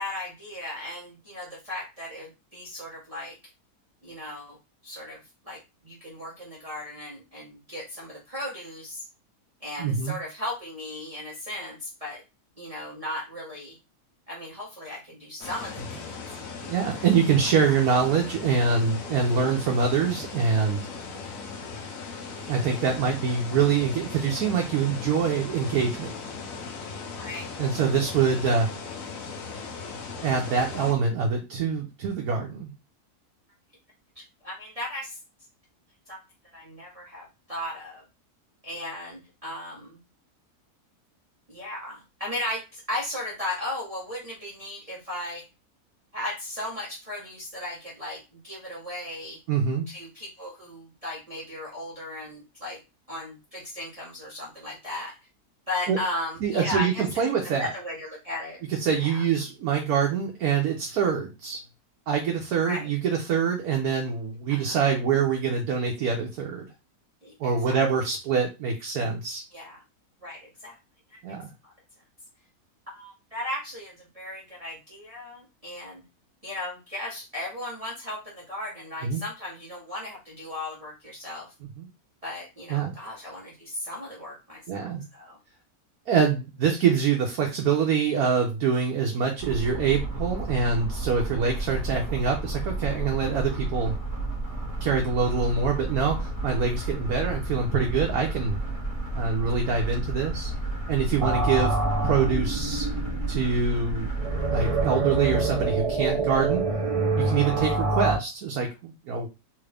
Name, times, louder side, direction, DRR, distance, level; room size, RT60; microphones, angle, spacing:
voice 1, 0.0-3.3 4.0-4.6 4.8-5.2 5.4-9.1 9.6-12.2 12.6-13.8 14.3-16.2 17.0-17.1 17.4-17.8 27.2-27.5 34.2-35.2 36.1-36.2 36.5-38.0 38.6-40.0 41.5-45.4 46.1-49.4 49.9-52.8 53.1-55.2 55.7-57.0 57.4-58.6 58.9-59.2 62.6-62.8 64.5-64.8 67.2-67.8 69.5-69.8 70.2-70.8 71.6-71.7 72.9-76.0 76.4-81.5 82.2-85.4 106.3-106.4, left 1 dB, 25° right, -6 dB, 1.0 m, -36 dB
voice 2, 9.8-10.2 16.6-20.9 22.5-26.1 27.6-28.7 30.2-32.7 49.5-49.9 55.9-56.0 56.4-57.7 58.7-61.6 62.1-66.7 67.4-69.4 71.2-71.5 79.0-79.2 81.8-81.9 82.7-82.9 84.7-85.0 86.1-94.0 94.8-98.6 99.1-100.5 100.9-101.7 102.0-102.8 103.3-104.1 104.5-106.6 107.1-109.3, right 6 dB, 75° right, 1 dB, 1.2 m, -25 dB
sound 1, 15.4-30.9, left 4 dB, 65° left, 1.2 m, -38 dB
sound 2, 89.4-104.9, right 2 dB, 20° left, 1.5 m, -32 dB
sound 3, 101.2-108.2, right 3 dB, 55° right, 0.3 m, -27 dB
3.3 x 2.5 x 3.3 m, 0.26 s
omnidirectional pair, 1.6 m